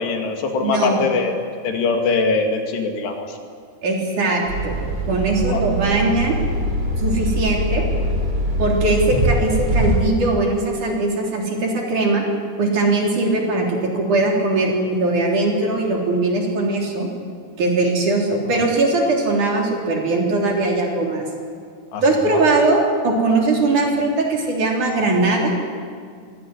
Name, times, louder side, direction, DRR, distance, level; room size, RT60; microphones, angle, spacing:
voice 1, 0.0-1.4 1.6-3.4 5.5-5.6 18.5-18.7 21.9-22.4, left 4 dB, 85° left, 4 dB, 4.3 m, -22 dB
voice 2, 0.6-1.0 3.8-4.8 5.1-6.4 7.0-7.9 8.6-12.2 12.6-17.1 17.6-21.2 22.0-25.5, right 2 dB, 50° right, -1 dB, 4.8 m, -20 dB
sound 1, 4.5-10.0, equal, 25° right, 4.3 m, -22 dB
23.5 x 17.0 x 9.8 m, 2.1 s
omnidirectional pair, 4.7 m